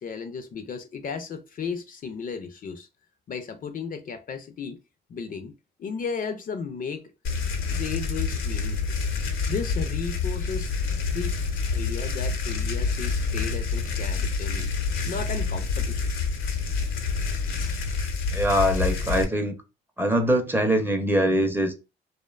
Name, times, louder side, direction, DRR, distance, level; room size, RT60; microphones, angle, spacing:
voice 1, 0.0-2.9 3.3-4.8 5.1-5.5 5.8-7.1 7.7-8.8 9.5-10.7 11.1-11.4 11.7-14.7 15.0-16.1, left 5 dB, 45° left, 0.4 m, -34 dB
sound 1, 7.2-19.2, left 4 dB, 85° left, 0.7 m, -27 dB
voice 2, 18.3-19.5 20.0-21.7, equal, 10° right, 0.5 m, -23 dB
2.6 x 2.1 x 2.3 m
cardioid pair, 90°, 20 cm